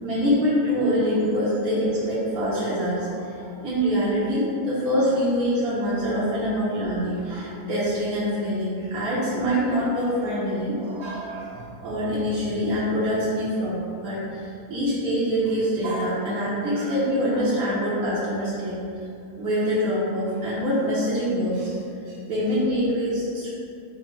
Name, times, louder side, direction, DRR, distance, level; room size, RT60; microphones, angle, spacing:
voice 1, 0.0-13.8 14.0-18.7 19.4-21.7 22.1-23.5, equal, 70° right, -10 dB, 1.4 m, -25 dB
5.4 x 2.1 x 4.5 m, 2.5 s
omnidirectional pair, 1.6 m